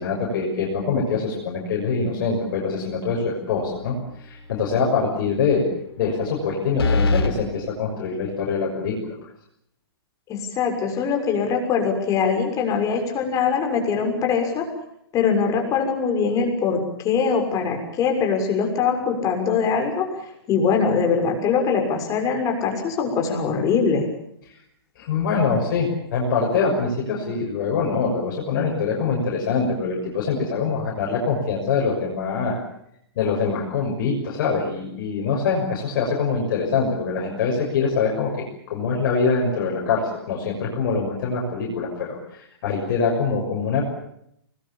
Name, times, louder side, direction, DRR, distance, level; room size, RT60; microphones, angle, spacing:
voice 1, 0.0-5.7 6.0-9.2 24.5-24.6 25.0-32.6 33.1-43.8, left 5 dB, 50° left, -2 dB, 6.5 m, -24 dB
sound 1, 3.7-4.1 4.5-4.6 6.8-7.3, left 3 dB, 70° left, 4.5 m, -21 dB
voice 2, 10.3-14.6 15.1-20.1 20.5-24.0, left 6 dB, 25° left, 3 dB, 6.5 m, -22 dB
24.5 x 20.5 x 8.8 m, 0.75 s
hypercardioid pair, 125°, 13 cm